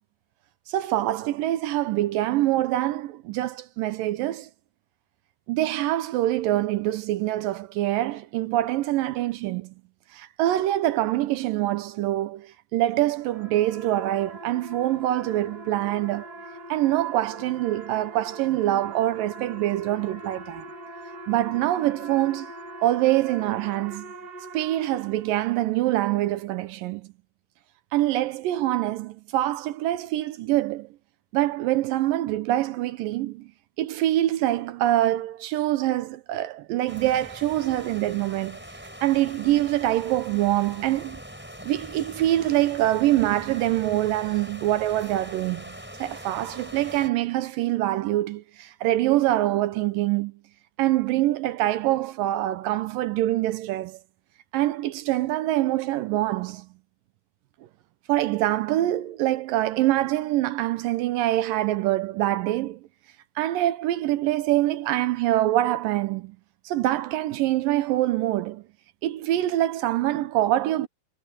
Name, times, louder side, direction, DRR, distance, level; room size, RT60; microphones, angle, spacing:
voice 1, 0.7-4.5 5.5-9.7 10.1-16.3 16.7-20.7 21.3-22.5 22.8-24.1 24.5-27.1 27.9-30.9 31.3-33.5 33.8-38.6 39.0-41.2 41.6-50.3 50.8-54.0 54.5-56.7 58.1-62.8 63.4-66.4 66.7-68.6 69.0-70.9, right 14 dB, 75° right, 2.1 m, -25 dB
sound 1, 12.9-25.7, right 1 dB, 35° right, 1.7 m, -42 dB
sound 2, 36.9-47.1, equal, 5° right, 4.5 m, -42 dB
omnidirectional pair, 4.7 m